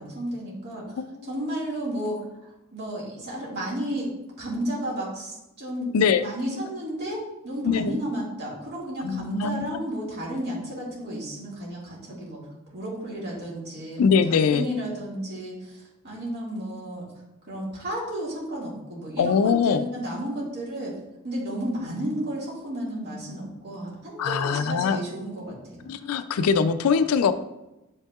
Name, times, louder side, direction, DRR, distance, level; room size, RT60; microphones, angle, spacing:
voice 1, 0.0-0.9 1.2-4.1 4.4-12.4 12.7-17.0 17.5-21.0 21.2-25.9, right 1 dB, 50° right, -6 dB, 2.0 m, -32 dB
voice 2, 1.0-1.3 5.9-6.3 7.6-8.0 9.0-9.8 14.0-14.7 19.2-19.8 24.2-25.0 25.9-27.3, left 6 dB, 80° left, 11 dB, 0.4 m, -22 dB
7.3 x 5.4 x 2.4 m, 0.95 s
head